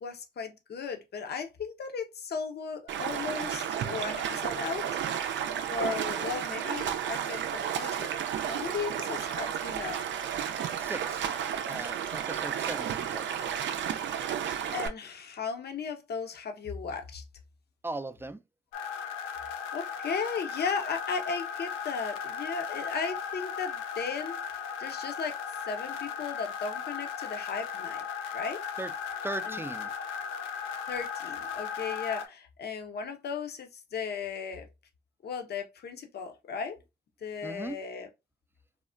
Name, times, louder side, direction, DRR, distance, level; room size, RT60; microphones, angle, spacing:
voice 1, 0.0-4.9 5.7-8.1 8.4-10.0 14.7-17.2 19.7-25.4 25.7-28.0 28.3-28.6 29.4-29.6 30.9-34.7 35.2-36.8 37.2-38.1, left 5 dB, 55° left, 0.7 m, -36 dB
Stream, 2.9-14.9, right 9 dB, 65° right, 0.5 m, -32 dB
voice 2, 10.7-11.4 11.7-13.5 17.8-18.4 28.8-28.9 29.2-29.9 37.4-37.8, right 2 dB, 10° right, 0.4 m, -38 dB
sound 1, 18.7-32.3, left 7 dB, 85° left, 0.4 m, -37 dB
3.5 x 2.0 x 2.5 m
hypercardioid pair, 45°, 20 cm